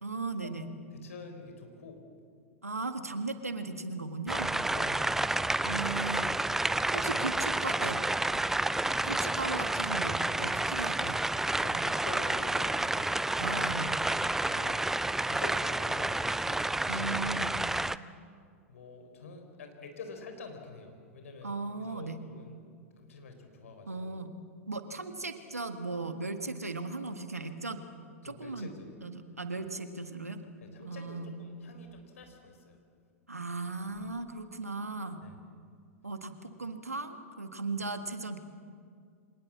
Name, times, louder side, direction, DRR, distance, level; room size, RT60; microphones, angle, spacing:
voice 1, 0.0-0.6 2.6-4.6 5.6-6.3 6.9-8.0 9.0-11.2 13.4-13.9 16.9-17.5 21.4-22.2 23.9-24.4 24.7-27.8 28.2-28.7 29.0-30.4 30.8-31.3 33.3-35.2 36.0-38.4, right 3 dB, 90° right, 8 dB, 1.6 m, -37 dB
voice 2, 0.9-2.0 4.7-5.3 6.9-7.3 8.3-8.5 8.8-9.2 11.6-13.1 14.5-14.8 15.3-16.7 18.7-22.6 23.0-24.1 28.2-29.0 30.6-32.8 35.2-35.4, left 3 dB, 70° left, 5 dB, 4.1 m, -47 dB
sound 1, 4.3-18.0, right 2 dB, 5° right, 0.5 m, -30 dB
25.0 x 19.5 x 7.5 m, 2.2 s
figure-of-eight pair, 95°, 8 cm